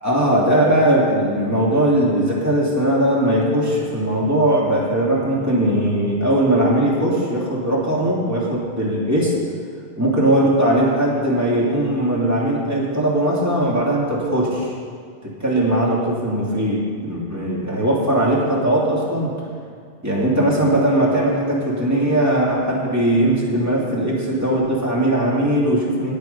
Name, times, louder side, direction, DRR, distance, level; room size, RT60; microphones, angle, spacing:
voice 1, 0.0-9.3 10.0-14.7 15.2-19.3 20.0-26.1, right 1 dB, 15° right, -5 dB, 2.8 m, -19 dB
19.0 x 6.9 x 5.5 m, 2.2 s
omnidirectional pair, 1.1 m